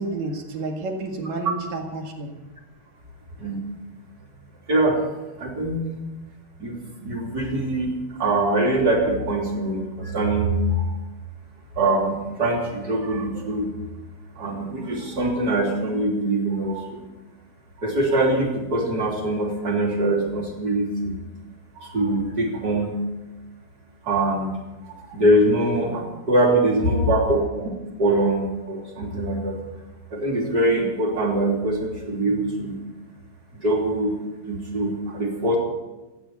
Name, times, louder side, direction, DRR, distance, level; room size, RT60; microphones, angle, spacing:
voice 1, 0.0-2.3, right 2 dB, 55° right, 3 dB, 2.9 m, -30 dB
voice 2, 4.7-5.0 5.4-5.8 6.6-10.9 11.7-13.7 14.3-17.0 17.8-21.2 21.7-23.0 24.0-24.6 24.8-27.7 28.0-29.6 30.1-32.8 33.5-34.1 34.4-35.6, right 1 dB, 25° right, -1 dB, 3.1 m, -23 dB
15.5 x 9.3 x 8.2 m, 1.1 s
omnidirectional pair, 4.4 m